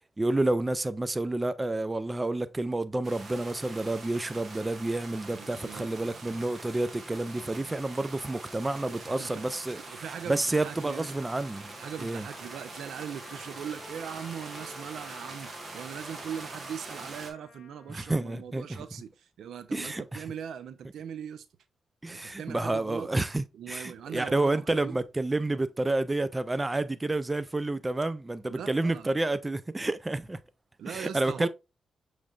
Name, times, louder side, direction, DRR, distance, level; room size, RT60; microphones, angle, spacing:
voice 1, 0.2-9.8 10.3-12.2 17.9-18.8 19.7-20.2 22.0-30.4 30.9-31.5, right 2 dB, 20° right, 0.4 m, -29 dB
sound 1, 3.0-17.3, right 2 dB, 45° right, 1.2 m, -44 dB
voice 2, 5.3-6.4 7.4-7.8 8.9-9.4 9.7-11.1 11.8-21.5 22.2-23.1 23.5-25.0 28.5-29.2 30.8-31.5, right 8 dB, 85° right, 0.5 m, -40 dB
Trumpet, 10.8-18.2, left 5 dB, 70° left, 0.7 m, -54 dB
6.4 x 3.2 x 2.4 m
cardioid pair, 70°, 0 cm